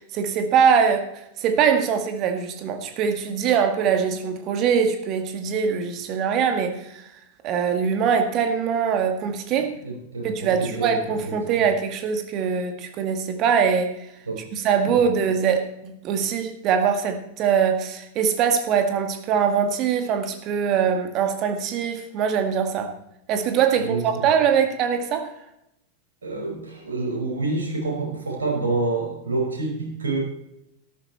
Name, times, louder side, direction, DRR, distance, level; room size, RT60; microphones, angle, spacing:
voice 1, 0.1-7.0 7.4-9.7 10.2-14.1 14.5-22.9 23.3-25.3, right 7 dB, 35° right, 6 dB, 1.9 m, -22 dB
voice 2, 9.8-11.0 11.2-11.7 14.3-14.4 14.8-15.0 23.8-24.2 26.2-30.2, right 3 dB, 70° right, -1 dB, 5.2 m, -28 dB
13.0 x 13.0 x 4.3 m, 0.80 s
figure-of-eight pair, 90°, 0 cm